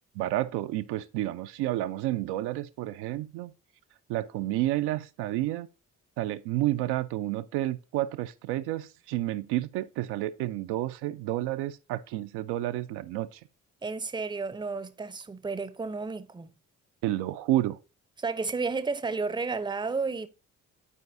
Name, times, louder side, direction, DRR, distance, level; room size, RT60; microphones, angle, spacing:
voice 1, 0.2-3.5 4.1-5.7 6.2-13.4 17.0-17.8, right 15 dB, 65° right, 0.5 m, -30 dB
voice 2, 13.8-16.5 18.2-20.3, right 4 dB, 10° right, 0.6 m, -32 dB
11.0 x 4.5 x 2.6 m
hypercardioid pair, 45°, 42 cm